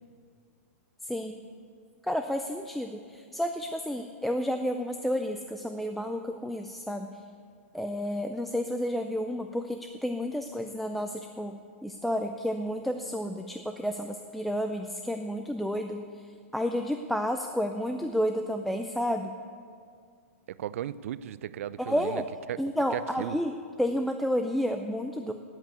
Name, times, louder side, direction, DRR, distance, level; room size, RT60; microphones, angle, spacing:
voice 1, 1.0-1.4 2.0-7.1 7.7-16.0 16.5-19.3 21.8-22.3 22.6-25.3, equal, ahead, 5 dB, 0.4 m, -31 dB
voice 2, 20.5-22.2 22.5-22.6 22.9-23.4, right 11 dB, 65° right, 17 dB, 0.4 m, -35 dB
10.5 x 8.1 x 9.4 m, 2.2 s
hypercardioid pair, 150°, 8 cm